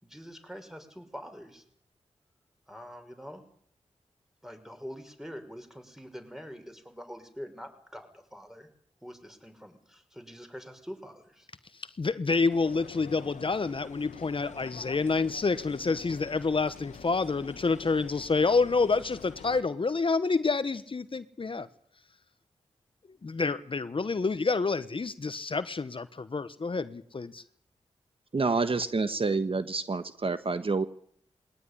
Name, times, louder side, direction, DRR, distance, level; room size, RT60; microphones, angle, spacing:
voice 1, 0.0-1.6 2.7-3.4 4.4-8.7 9.0-11.5, equal, 5° right, 7 dB, 5.7 m, -45 dB
voice 2, 11.7-21.7 23.2-27.4, left 4 dB, 50° left, 13 dB, 1.1 m, -28 dB
sound 1, 12.5-19.6, left 7 dB, 90° left, 1.2 m, -47 dB
voice 3, 28.3-30.8, right 4 dB, 50° right, 11 dB, 1.4 m, -28 dB
20.5 x 18.0 x 10.0 m, 0.64 s
cardioid pair, 50°, 12 cm